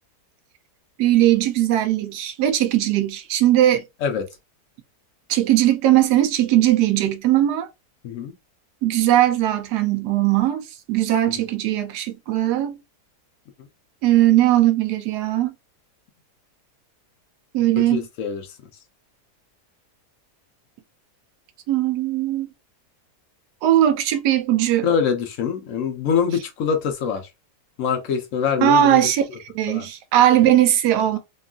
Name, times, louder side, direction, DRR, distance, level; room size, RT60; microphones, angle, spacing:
voice 1, 1.0-3.8 5.3-7.7 8.8-12.8 14.0-15.5 17.5-18.1 21.7-22.5 23.6-24.9 28.6-29.2 29.5-31.2, right 12 dB, 80° right, 1.1 m, -19 dB
voice 2, 17.8-18.6 24.8-27.3 27.8-29.0 29.7-29.9, left 7 dB, 65° left, 0.8 m, -24 dB
2.9 x 2.3 x 2.3 m
omnidirectional pair, 1.7 m